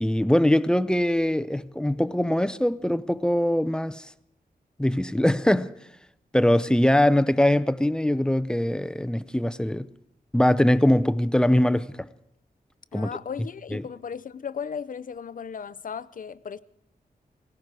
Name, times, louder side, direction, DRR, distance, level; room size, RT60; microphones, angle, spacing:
voice 1, 0.0-4.1 4.8-5.7 6.3-9.9 10.3-12.1 12.9-13.1 13.7-13.8, left 1 dB, 5° left, 0.5 m, -22 dB
voice 2, 12.9-16.6, left 7 dB, 60° left, 0.5 m, -36 dB
18.5 x 16.5 x 4.7 m
wide cardioid pair, 95°, 16 cm